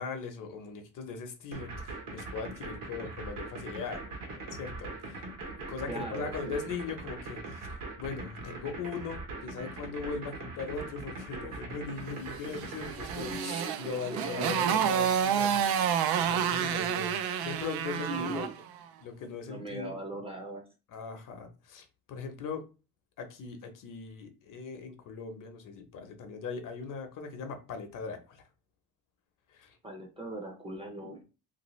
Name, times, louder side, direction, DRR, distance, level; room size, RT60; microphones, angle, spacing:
voice 1, 0.0-5.2 5.6-7.7 8.0-15.9 16.2-18.4 19.0-20.0 20.9-22.6 23.2-28.4 29.5-29.8, left 5 dB, 60° left, 0.7 m, -40 dB
sound 1, 1.5-13.4, right 3 dB, 65° right, 1.1 m, -41 dB
voice 2, 5.9-6.7 11.4-11.7 13.2-14.8 18.0-18.5 19.5-20.6 29.8-31.2, right 1 dB, 15° right, 0.5 m, -40 dB
Motorcycle, 12.5-18.6, right 8 dB, 90° right, 0.5 m, -29 dB
3.0 x 2.6 x 3.0 m
cardioid pair, 170°, 36 cm